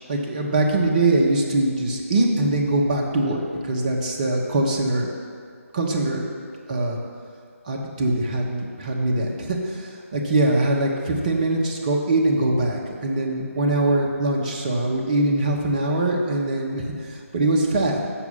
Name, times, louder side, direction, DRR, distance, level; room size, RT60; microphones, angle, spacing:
voice 1, 0.1-5.1 5.7-6.2 6.7-7.0 7.7-18.0, right 2 dB, 30° right, 0 dB, 1.1 m, -22 dB
7.1 x 6.0 x 7.3 m, 2.2 s
figure-of-eight pair, 150°, 8 cm